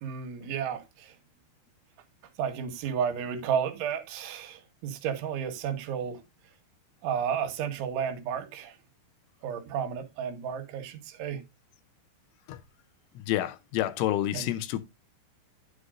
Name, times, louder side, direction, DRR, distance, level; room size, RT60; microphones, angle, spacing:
voice 1, 0.0-1.2 2.4-6.2 7.0-8.8 9.4-11.4 14.3-14.5, right 8 dB, 80° right, 3.5 m, -32 dB
voice 2, 13.3-14.8, left 13 dB, 85° left, 3.1 m, -28 dB
9.7 x 8.0 x 2.5 m
omnidirectional pair, 5.6 m